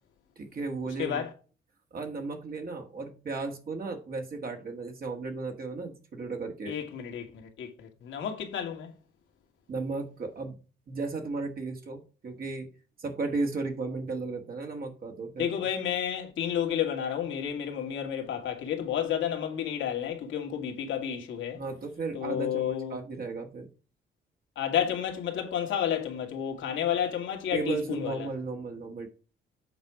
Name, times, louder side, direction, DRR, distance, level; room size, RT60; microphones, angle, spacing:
voice 1, 0.4-1.2 1.9-6.7 9.7-10.6 10.9-12.7 13.0-15.5 21.5-23.7 27.5-29.1, right 3 dB, 50° right, 1.6 m, -35 dB
voice 2, 1.0-1.3 6.7-8.9 15.4-21.6 22.1-23.0 24.6-28.3, left 9 dB, 75° left, 1.9 m, -31 dB
8.0 x 4.3 x 4.7 m
cardioid pair, 90°, 20 cm